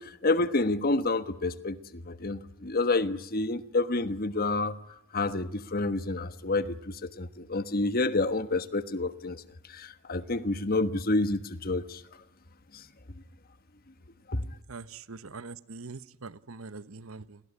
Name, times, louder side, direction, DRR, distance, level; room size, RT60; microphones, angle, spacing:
voice 1, 0.0-4.7 5.1-9.4 9.7-12.0 12.7-12.8 14.3-14.4, left 2 dB, 45° left, 1.3 m, -29 dB
voice 2, 14.7-17.4, right 4 dB, 85° right, 1.0 m, -43 dB
29.5 x 19.5 x 9.9 m
head